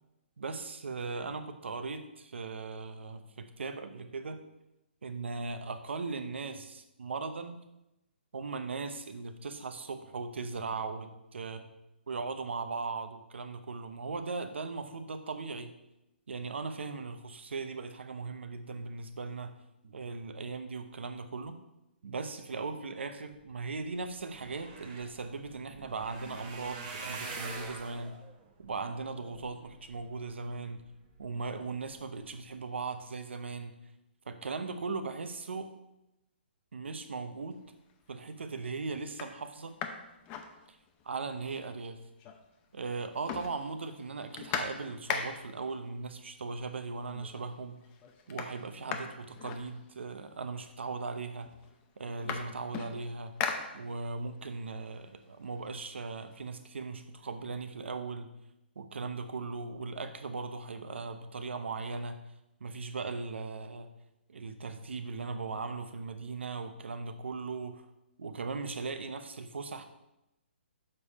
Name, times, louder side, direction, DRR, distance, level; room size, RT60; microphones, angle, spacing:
voice 1, 0.4-4.4 5.0-7.6 8.3-11.7 12.1-15.7 16.3-19.5 19.8-21.6 22.0-28.2 28.6-30.8 31.2-33.7 34.3-35.7 36.7-37.6 38.1-39.7 40.7-40.8 41.0-42.0 42.7-47.8 48.3-51.5 52.0-53.4 53.7-58.3 58.8-62.2 62.6-63.9 64.3-67.9 68.2-69.8, right 4 dB, 85° right, 8 dB, 0.9 m, -38 dB
sound 1, 23.9-30.3 30.9-31.3 31.7-31.9 32.2-32.3, right 4 dB, 25° right, 1.1 m, -45 dB
sound 2, 37.7-38.1 38.6-38.7 39.0-41.1 41.5-41.6 41.8-42.6 42.9-45.6 46.6-46.7 47.1-47.6 47.8-50.2 51.0-51.1 51.4-54.3 54.7-56.4, left 6 dB, 20° left, 0.5 m, -40 dB
6.9 x 5.4 x 4.2 m, 0.89 s
hypercardioid pair, 160°, 6 cm